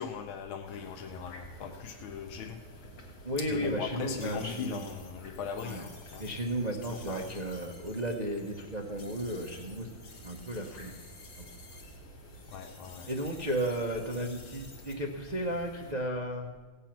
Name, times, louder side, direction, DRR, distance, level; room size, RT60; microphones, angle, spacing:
voice 1, 0.0-2.6 3.4-6.2 6.9-7.3 12.5-13.1, left 7 dB, 80° left, 6 dB, 1.6 m, -39 dB
sound 1, 0.6-15.9, right 1 dB, 65° left, 2.7 m, -51 dB
voice 2, 3.2-4.9 5.6-5.9 6.2-9.9 10.2-10.9 11.4-11.5 13.1-16.5, right 1 dB, 40° right, 1 dB, 0.6 m, -34 dB
sound 2, 4.2-12.0 12.3-14.9, left 4 dB, 45° left, 1.9 m, -54 dB
17.0 x 8.3 x 5.9 m, 1.4 s
omnidirectional pair, 2.2 m